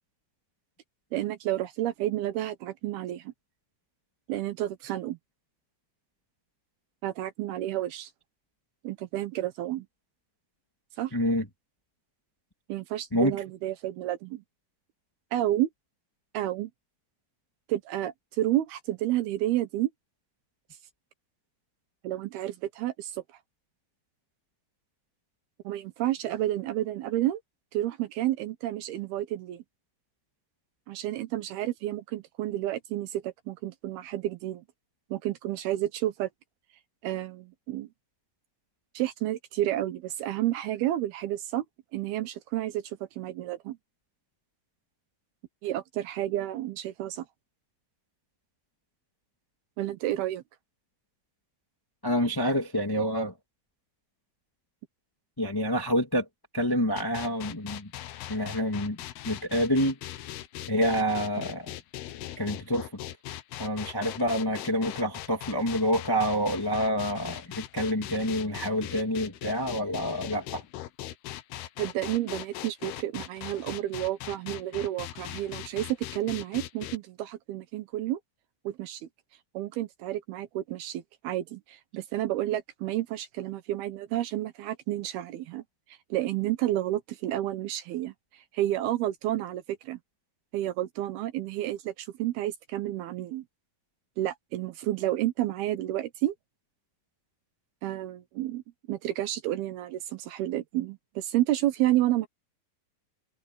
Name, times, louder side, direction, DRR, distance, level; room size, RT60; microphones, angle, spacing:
voice 1, 1.1-3.3 4.3-5.2 7.0-8.1 8.8-9.9 11.0-11.1 12.7-14.4 15.3-15.7 16.3-16.7 17.7-19.9 22.0-23.2 25.6-27.4 27.7-29.6 30.9-34.6 35.1-36.3 37.0-37.9 38.9-41.6 41.9-43.8 45.6-47.3 49.8-50.4 71.8-78.2 78.6-79.1 79.5-85.6 85.9-90.0 90.5-93.4 94.2-96.3 97.8-98.6 98.9-102.3, right 14 dB, 80° right, 2.9 m, -30 dB
voice 2, 11.1-11.5 13.1-13.3 52.0-53.3 55.4-56.3 56.5-57.9 58.3-59.0 59.2-60.0 60.7-61.7 62.4-62.9 63.6-70.6, equal, 15° left, 0.9 m, -27 dB
sound 1, 57.0-77.0, left 13 dB, 80° left, 3.0 m, -40 dB
omnidirectional pair, 4.5 m